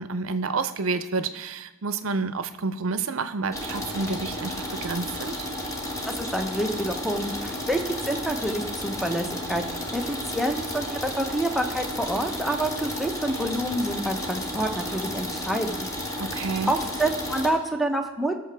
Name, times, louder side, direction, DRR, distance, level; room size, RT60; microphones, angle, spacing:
voice 1, 0.0-5.5 16.2-16.8, right 4 dB, 80° right, 11 dB, 0.6 m, -29 dB
sound 1, 3.5-17.5, left 1 dB, 15° left, 1.2 m, -33 dB
voice 2, 6.1-9.6 9.9-15.9 16.7-18.4, right 1 dB, ahead, 3 dB, 0.8 m, -28 dB
18.0 x 6.7 x 3.4 m, 1.1 s
head